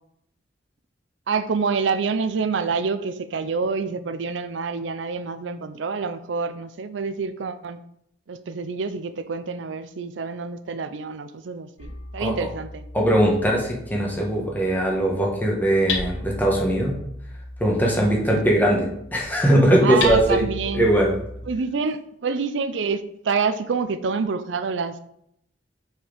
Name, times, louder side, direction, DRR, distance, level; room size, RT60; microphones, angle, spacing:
voice 1, 1.3-7.8 8.3-12.9 18.3-18.4 19.8-20.9 21.5-25.0, right 5 dB, 85° right, 11 dB, 0.5 m, -27 dB
Hammer, 11.8-21.6, left 3 dB, 85° left, 0.9 m, -35 dB
voice 2, 12.9-16.9 17.6-20.4 20.7-21.1, right 1 dB, 10° left, -2 dB, 1.4 m, -20 dB
5.6 x 4.5 x 5.0 m, 0.72 s
head